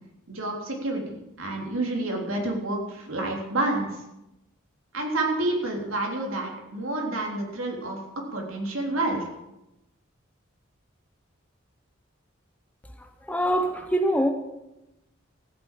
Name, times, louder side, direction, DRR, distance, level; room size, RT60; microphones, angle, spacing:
voice 1, 0.3-3.9 4.9-8.0 8.3-9.2, right 2 dB, 80° right, 0 dB, 3.5 m, -29 dB
voice 2, 13.0-14.3, equal, 5° left, 6 dB, 1.0 m, -24 dB
15.0 x 9.0 x 7.6 m, 0.93 s
head